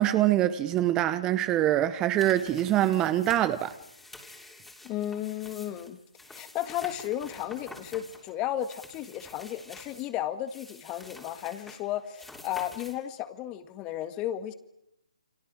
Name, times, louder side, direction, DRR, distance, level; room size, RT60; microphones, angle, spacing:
voice 1, 0.0-3.7, right 13 dB, 15° right, 0.9 m, -24 dB
sound 1, 2.2-10.1 10.5-13.0, left 2 dB, 5° left, 3.2 m, -49 dB
voice 2, 4.8-6.0 6.3-14.5, left 12 dB, 20° left, 1.9 m, -34 dB
29.5 x 25.5 x 6.3 m
figure-of-eight pair, 145°, 4 cm